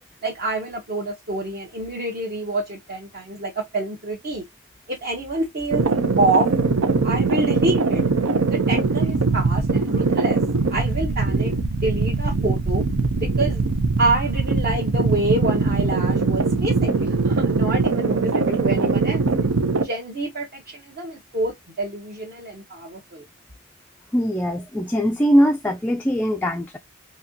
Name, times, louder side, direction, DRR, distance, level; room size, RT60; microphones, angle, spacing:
voice 1, 0.2-4.4 4.9-5.9 6.2-6.5 7.0-8.0 8.5-10.4 10.7-11.5 11.8-12.8 13.1-13.6 14.0-19.3 19.8-23.3, right 2 dB, 45° right, 0.8 m, -27 dB
sound 1, 5.7-19.8, right 4 dB, 85° right, 0.7 m, -21 dB
voice 2, 24.1-26.8, equal, 10° left, 0.3 m, -21 dB
4.0 x 2.8 x 2.7 m
head